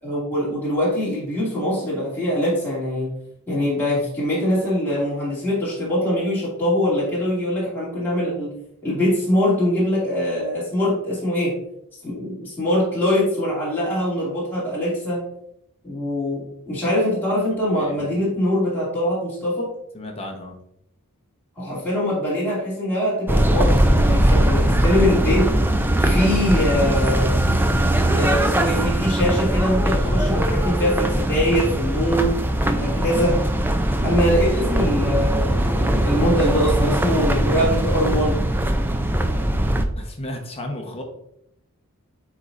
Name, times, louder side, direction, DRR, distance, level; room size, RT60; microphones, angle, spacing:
voice 1, 0.0-3.1 3.5-8.5 8.8-11.6 12.0-15.2 15.8-19.7 21.6-25.5 26.0-27.4 28.2-32.3 32.6-33.4 34.0-38.4, equal, 10° left, -10 dB, 2.5 m, -23 dB
voice 2, 17.7-18.3 19.9-20.6 32.0-33.1 40.0-41.0, left 1 dB, 25° left, 2 dB, 0.9 m, -34 dB
sound 1, 23.3-39.9, right 1 dB, 10° right, 0.4 m, -20 dB
9.4 x 4.1 x 2.5 m, 0.76 s
head